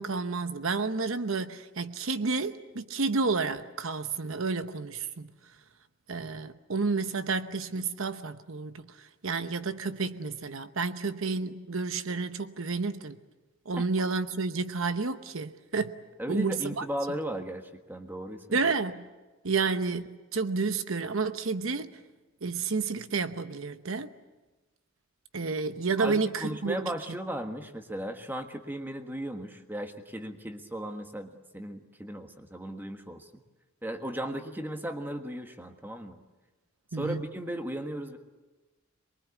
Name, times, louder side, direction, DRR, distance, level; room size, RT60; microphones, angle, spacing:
voice 1, 0.0-5.3 6.1-8.8 9.2-13.2 13.7-15.9 16.3-16.8 18.5-19.1 19.4-21.9 22.4-24.1 25.3-26.8 36.9-37.2, right 4 dB, 70° right, 1.0 m, -30 dB
voice 2, 16.2-18.6 26.0-33.3 33.8-36.2 37.0-38.2, right 1 dB, 10° right, 1.5 m, -36 dB
24.0 x 22.5 x 8.4 m
head